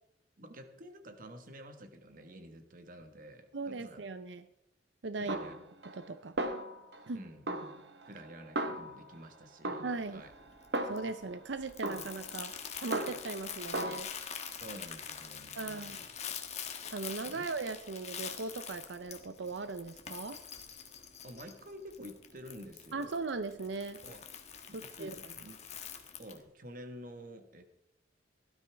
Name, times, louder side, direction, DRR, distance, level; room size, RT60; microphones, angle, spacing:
voice 1, 0.4-4.0 5.2-5.5 7.1-7.5 8.0-10.3 14.6-16.1 17.2-17.4 21.2-23.2 24.0-24.2 24.7-25.6 26.2-27.6, equal, 50° right, 7 dB, 1.4 m, -49 dB
voice 2, 3.5-4.4 5.0-5.4 6.0-6.3 7.1-7.2 9.8-10.2 10.9-12.5 12.8-14.1 15.6-16.0 16.9-20.4 22.9-24.0 24.7-25.3, right 3 dB, 90° right, 11 dB, 0.6 m, -38 dB
Snare drum, 5.3-6.1 6.4-7.1 7.5-9.2 9.6-11.3 11.8-13.4 13.7-14.0, right 1 dB, 70° right, 1.1 m, -37 dB
Crumpling crinkling, 10.0-26.4, left 8 dB, 40° left, 1.3 m, -45 dB
17.0 x 12.5 x 3.5 m, 0.81 s
head